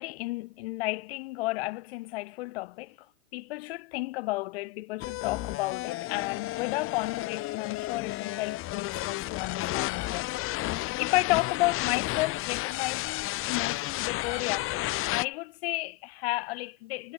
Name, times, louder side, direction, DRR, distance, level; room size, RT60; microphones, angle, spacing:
voice 1, 0.0-3.0 3.3-17.1, left 21 dB, 50° left, 3.9 m, -32 dB
sound 1, 5.0-15.3, left 18 dB, 30° left, 6.8 m, -32 dB
hypercardioid pair, 140°, 40 cm